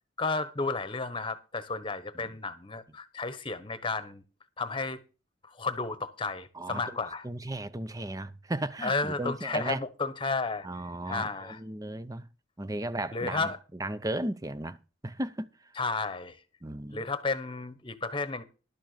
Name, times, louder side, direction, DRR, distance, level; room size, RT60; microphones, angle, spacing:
voice 1, 0.2-4.2 4.6-5.0 5.6-7.2 8.8-10.7 11.1-11.6 13.1-13.6 15.8-16.4 16.9-18.4, left 3 dB, 25° left, 1.1 m, -32 dB
voice 2, 6.5-7.0 7.2-9.8 10.6-12.3 12.6-15.7 16.6-17.1, right 1 dB, 20° right, 0.7 m, -35 dB
12.0 x 6.6 x 6.7 m
head